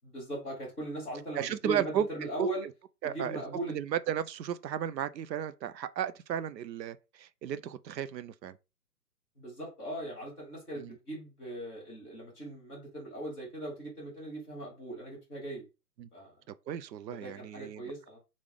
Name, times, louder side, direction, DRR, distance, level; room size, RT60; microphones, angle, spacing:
voice 1, 0.1-2.7 3.0-3.8 9.4-15.6 16.1-16.4 17.1-18.2, right 1 dB, 5° right, 0.9 m, -39 dB
voice 2, 1.4-2.1 3.0-3.4 3.7-8.6 10.8-10.9 16.0-16.1 16.7-17.8, right 9 dB, 90° right, 0.6 m, -34 dB
3.4 x 2.5 x 3.6 m
hypercardioid pair, 175°, 49 cm